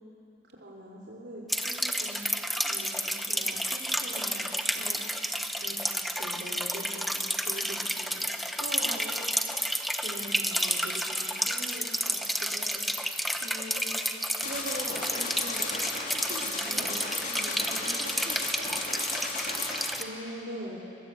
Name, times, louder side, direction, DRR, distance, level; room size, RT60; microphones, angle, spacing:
voice 1, 0.6-2.3 2.6-4.6 5.6-8.3 10.0-12.8 16.6-17.0 20.0-20.8, equal, 85° right, -5 dB, 3.1 m, -43 dB
sound 1, 1.5-20.0, equal, ahead, 1.0 m, -31 dB
voice 2, 8.6-9.1 13.4-14.0 14.4-15.7 16.1-18.7, right 1 dB, 70° right, -1 dB, 3.7 m, -41 dB
sound 2, 14.4-20.0, left 3 dB, 45° left, 3.1 m, -35 dB
25.5 x 21.0 x 8.2 m, 2.9 s
head